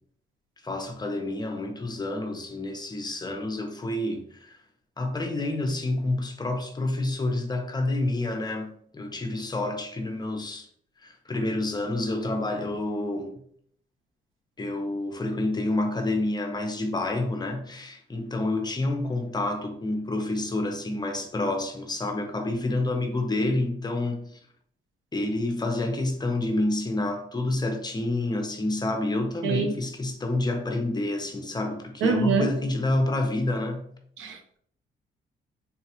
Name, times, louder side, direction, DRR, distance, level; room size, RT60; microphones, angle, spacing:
voice 1, 0.6-4.6 5.0-10.7 11.0-13.4 14.6-24.4 25.1-33.9, left 2 dB, 20° left, 0.7 m, -28 dB
voice 2, 32.0-32.5 34.2-34.6, right 5 dB, 80° right, 0.6 m, -25 dB
4.0 x 2.3 x 2.9 m
cardioid pair, 90°, 20 cm